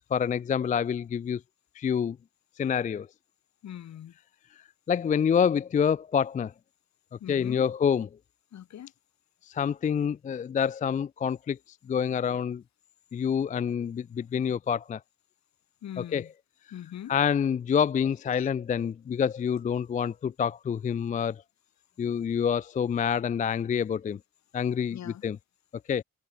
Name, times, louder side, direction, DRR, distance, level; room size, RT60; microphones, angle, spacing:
voice 1, 0.1-1.4 1.8-2.2 2.6-3.1 4.9-6.5 7.3-8.1 9.5-11.6 11.9-12.6 13.1-15.0 16.0-16.3 17.1-21.4 22.0-24.2 24.5-25.4 25.9-26.0, left 7 dB, 25° left, 0.3 m, -27 dB
voice 2, 3.6-4.1 7.2-7.7 8.5-8.9 15.8-16.3 16.7-17.1 18.4-18.5 24.9-25.2, left 10 dB, 65° left, 2.6 m, -41 dB
cardioid pair, 90°, 30 cm